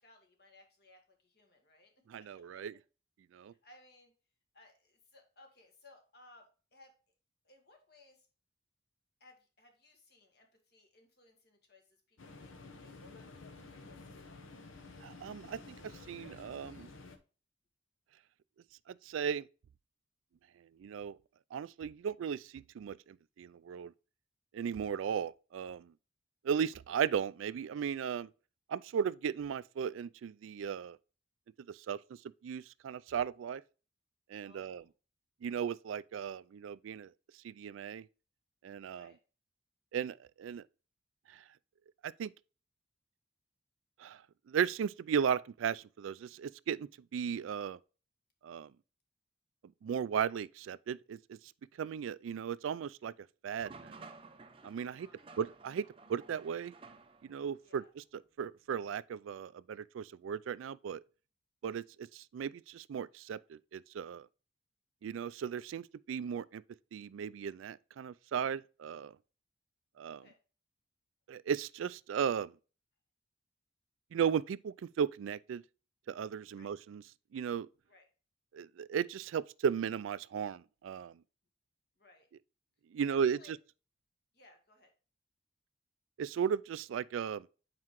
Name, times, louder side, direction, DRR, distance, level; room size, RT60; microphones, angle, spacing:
voice 1, 0.0-1.9 2.2-2.6 3.4-4.1 4.5-6.9 7.4-8.3 9.2-13.3 13.6-14.0 34.4-34.9 38.9-39.2 54.8-55.3 57.6-57.9 70.1-70.4 76.6-76.7 77.9-78.0 82.0-82.3 83.0-83.5 84.3-84.9, left 2 dB, 55° left, 1.6 m, -62 dB
voice 2, 2.1-2.8 3.3-3.5 15.0-16.9 18.9-19.5 20.8-21.2 21.5-23.9 24.5-25.9 26.4-28.3 28.7-31.0 31.7-32.0 32.4-33.6 34.3-34.8 35.4-37.1 37.4-38.1 38.6-39.1 39.9-40.6 41.3-41.4 42.0-42.3 44.0-44.2 44.5-47.8 48.4-48.7 49.8-51.4 51.8-53.1 53.4-53.9 54.6-55.1 55.4-55.8 56.1-56.7 57.2-61.0 61.6-64.3 65.0-66.6 66.9-69.2 70.0-70.2 71.3-72.5 74.1-75.6 76.1-77.0 77.3-77.7 78.5-81.2 82.9-83.6 86.2-87.5, right 7 dB, 85° right, 0.3 m, -36 dB
sound 1, 12.2-17.2, left 3 dB, 90° left, 0.9 m, -51 dB
sound 2, 53.6-57.5, right 4 dB, 30° right, 0.6 m, -54 dB
7.6 x 4.8 x 3.0 m
head